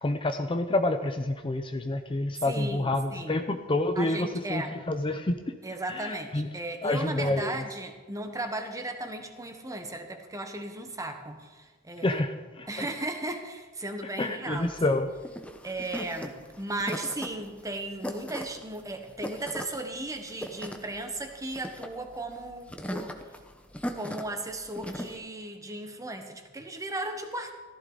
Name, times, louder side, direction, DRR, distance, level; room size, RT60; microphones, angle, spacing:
voice 1, 0.0-5.4 5.9-6.5 6.8-7.6 12.0-12.9 14.2-15.1, left 2 dB, 25° left, 7 dB, 0.6 m, -28 dB
voice 2, 2.5-3.4 4.0-4.8 5.6-12.2 12.7-14.8 15.6-23.1 24.0-27.5, right 2 dB, 15° right, 5 dB, 1.3 m, -36 dB
sound 1, 14.6-25.2, equal, 5° left, 1.0 m, -39 dB
15.5 x 14.0 x 4.0 m, 1.3 s
head